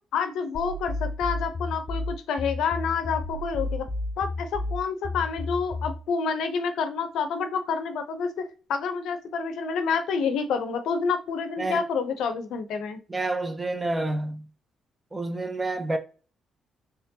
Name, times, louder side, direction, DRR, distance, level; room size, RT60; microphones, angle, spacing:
voice 1, 0.1-3.9 4.2-8.3 8.7-13.0, left 5 dB, 80° left, 0.7 m, -28 dB
sound 1, 0.5-6.0, left 2 dB, 40° left, 0.6 m, -32 dB
voice 2, 13.1-14.5 15.1-16.0, right 2 dB, 20° right, 0.7 m, -28 dB
3.7 x 3.2 x 2.8 m
cardioid pair, 90°, 0 cm